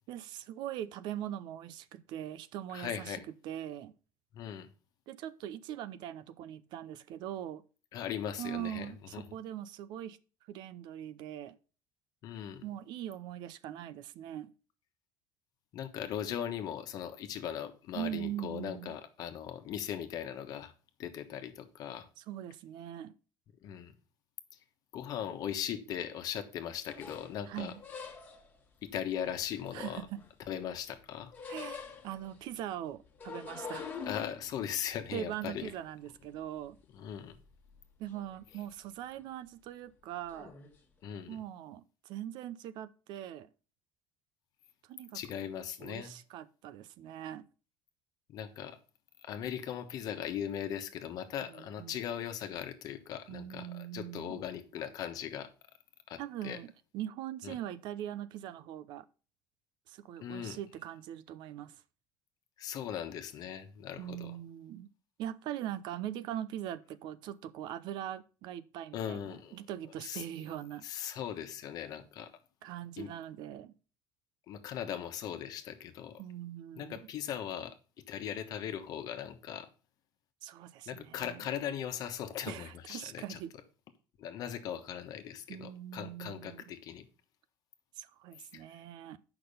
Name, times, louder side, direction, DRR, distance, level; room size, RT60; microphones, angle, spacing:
voice 1, 0.1-3.9 5.1-7.6 8.4-10.2 10.5-11.6 12.6-14.5 17.9-19.0 22.2-23.1 27.5-27.8 29.7-30.2 31.5-33.9 35.1-36.8 38.0-40.5 41.3-43.5 44.9-45.5 45.8-47.5 51.5-52.0 53.3-54.4 56.2-59.1 59.9-61.8 64.0-64.9 65.2-70.9 72.6-73.7 76.2-77.1 80.4-81.5 82.5-83.5 85.5-86.6 88.0-89.2, right 11 dB, 60° right, 0.6 m, -41 dB
voice 2, 2.7-3.2 4.3-4.7 7.9-9.2 12.2-12.6 15.7-20.7 21.0-22.1 23.6-23.9 24.9-27.7 28.8-30.0 30.5-31.3 34.1-35.7 36.9-37.4 41.0-41.4 45.1-46.1 48.3-48.8 49.2-55.5 56.1-56.6 57.4-57.6 60.2-60.6 62.6-64.4 68.9-69.6 70.0-70.2 70.8-72.3 73.0-73.1 74.5-76.1 76.8-77.7 78.1-79.7 80.9-83.4 84.2-87.0 88.5-88.6, left 9 dB, 45° left, 1.2 m, -39 dB
sound 1, 26.9-28.6 29.3-30.6 30.9-32.4 33.0-36.8 37.1-37.8 38.1-38.6 39.0-39.2 40.3-40.7, left 5 dB, 20° left, 1.6 m, -46 dB
8.6 x 5.9 x 5.4 m
cardioid pair, 160°, 9 cm